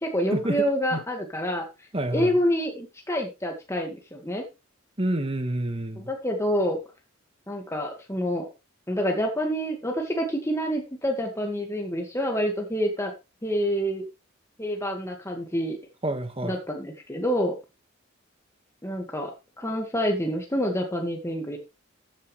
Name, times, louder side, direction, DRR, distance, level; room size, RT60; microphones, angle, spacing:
voice 1, 0.0-4.4 6.0-6.8 7.5-8.4 8.9-13.1 13.4-14.0 14.6-15.8 16.4-17.5 18.8-19.3 19.6-21.6, equal, 15° left, 1.9 m, -27 dB
voice 2, 1.9-2.3 5.0-6.1 16.0-16.6, right 1 dB, 30° right, 1.7 m, -28 dB
14.0 x 8.9 x 3.3 m
head